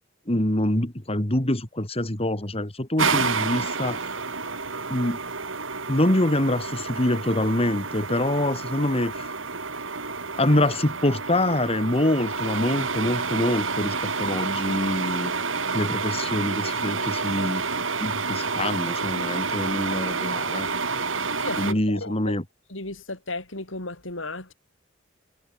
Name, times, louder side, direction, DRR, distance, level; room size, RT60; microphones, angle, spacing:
voice 1, 0.3-4.1 4.9-5.2 5.9-9.3 10.3-15.3 15.7-17.6 18.0-20.7 21.6-22.4, left 1 dB, 30° left, 2.9 m, -25 dB
sound 1, 3.0-21.7, right 4 dB, 85° right, 4.6 m, -29 dB
voice 2, 21.3-22.3 22.7-24.5, left 2 dB, 80° left, 6.9 m, -34 dB
head